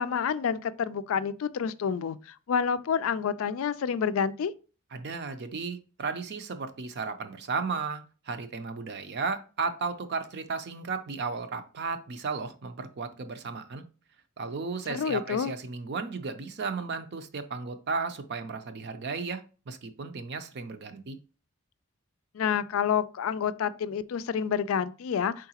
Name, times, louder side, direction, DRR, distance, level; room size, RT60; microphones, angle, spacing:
voice 1, 0.0-4.5 14.9-15.5 22.3-25.5, left 7 dB, 70° left, 0.3 m, -28 dB
voice 2, 4.9-13.8 14.4-21.2, right 4 dB, 50° right, 0.5 m, -34 dB
4.7 x 3.7 x 2.8 m
head